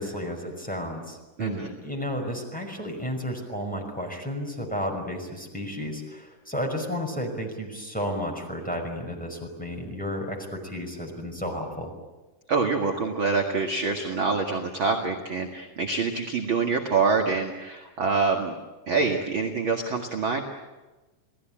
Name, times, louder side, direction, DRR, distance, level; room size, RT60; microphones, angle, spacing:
voice 1, 0.0-11.9, equal, ahead, 1 dB, 5.2 m, -32 dB
voice 2, 1.4-1.7 12.5-18.5 18.9-20.4, right 4 dB, 40° right, 2 dB, 2.3 m, -26 dB
29.5 x 19.0 x 8.9 m, 1.2 s
omnidirectional pair, 4.0 m